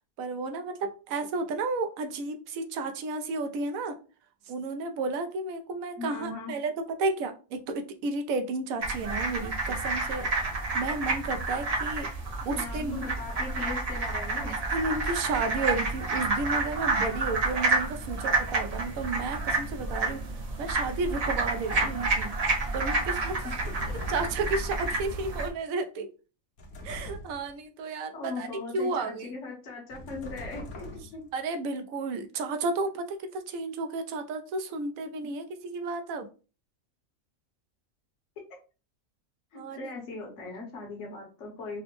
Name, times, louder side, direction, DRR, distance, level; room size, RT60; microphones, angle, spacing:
voice 1, 0.2-3.9 4.4-6.7 7.0-10.3 10.7-12.1 12.4-13.0 14.5-20.2 20.6-22.3 22.7-23.5 24.1-26.1 26.8-28.5 28.7-29.3 31.3-36.3 39.5-39.9, right 3 dB, 80° right, 7 dB, 1.0 m, -32 dB
voice 2, 6.0-6.5 12.5-14.6 23.4-23.7 28.1-31.2 35.2-35.3 39.5-41.8, left 3 dB, 60° left, 0 dB, 1.3 m, -39 dB
sound 1, 8.8-25.5, right 3 dB, 50° right, 0.4 m, -29 dB
sound 2, 21.6-22.3 23.5-24.9 26.6-27.6 29.9-31.3, left 1 dB, 90° left, 1.3 m, -43 dB
4.0 x 2.0 x 2.9 m, 0.34 s
omnidirectional pair, 1.4 m